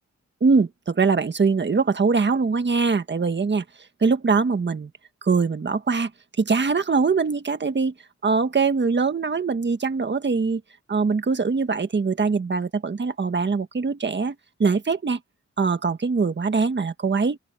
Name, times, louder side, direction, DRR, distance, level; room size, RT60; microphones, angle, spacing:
voice 1, 0.4-3.6 4.0-4.9 5.2-6.1 6.4-7.9 8.2-10.6 10.9-15.2 15.6-17.4, right 4 dB, 40° right, 1.6 m, -22 dB
open air
wide cardioid pair, 130°, 30 cm